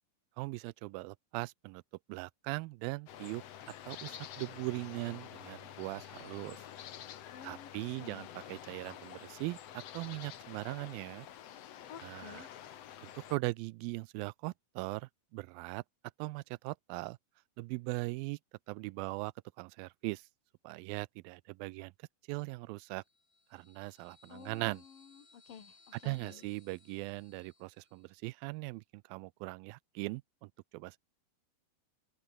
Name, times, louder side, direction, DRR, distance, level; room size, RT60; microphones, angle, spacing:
voice 1, 0.4-1.8 2.1-3.4 3.9-6.6 7.4-11.3 12.0-12.5 13.0-15.8 16.2-17.2 17.6-18.4 18.7-19.3 19.6-20.3 20.6-21.9 22.3-23.0 23.5-24.8 26.0-28.8 29.1-31.0, right 23 dB, 85° right, 2.3 m, -40 dB
sound 1, 3.1-13.4, left 10 dB, 55° left, 2.0 m, -49 dB
voice 2, 7.3-8.3 11.9-12.5 24.3-26.4, left 8 dB, 75° left, 4.7 m, -52 dB
sound 2, 22.8-28.3, left 3 dB, 35° left, 6.4 m, -65 dB
open air
omnidirectional pair, 4.1 m